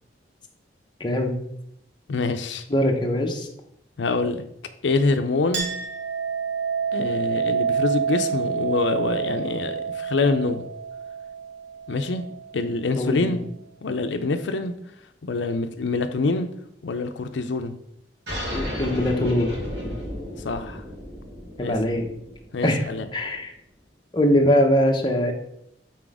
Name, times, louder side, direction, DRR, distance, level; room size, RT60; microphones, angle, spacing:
voice 1, 1.0-1.3 2.7-3.5 12.9-13.4 18.5-19.5 21.6-22.1 22.6-22.8 23.1-23.5 24.1-25.3, left 1 dB, 25° left, 2 dB, 0.8 m, -22 dB
voice 2, 2.1-2.6 4.0-4.4 4.8-5.7 6.9-10.6 11.9-12.2 12.5-13.4 13.8-14.7 15.2-16.5 16.8-17.7 20.4-20.8 21.6-21.8 22.5-23.1, left 3 dB, 85° left, 8 dB, 0.5 m, -25 dB
Chink clink, 5.5-12.6, right 6 dB, 90° right, 1.9 m, -28 dB
sound 1, 18.3-23.3, equal, 60° right, 2.6 m, -33 dB
6.1 x 4.2 x 4.8 m, 0.75 s
head